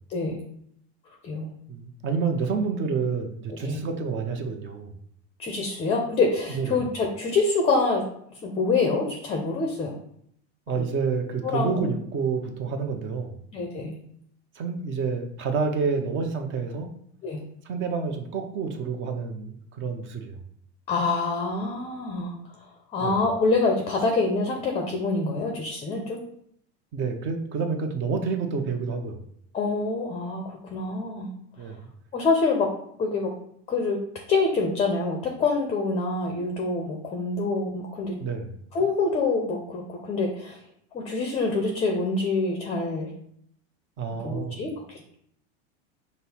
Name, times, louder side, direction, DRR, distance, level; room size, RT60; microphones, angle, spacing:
voice 1, 0.1-0.4 1.2-1.5 3.6-3.8 5.4-8.0 8.4-10.0 10.8-10.9 11.4-11.9 13.5-14.0 17.2-17.4 20.9-22.4 22.9-26.2 29.5-31.3 32.1-32.7 33.0-33.3 33.7-34.0 34.3-38.2 38.7-40.6 40.9-43.1 44.2-45.1, left 3 dB, 20° left, 2 dB, 0.5 m, -26 dB
voice 2, 1.7-4.9 6.5-6.8 10.7-13.3 14.6-16.9 17.6-20.4 23.0-23.2 26.9-29.2 31.6-31.8 38.2-38.6 44.0-44.7, right 5 dB, 35° right, 5 dB, 0.7 m, -29 dB
5.3 x 2.0 x 4.3 m, 0.68 s
supercardioid pair, 140°, 33 cm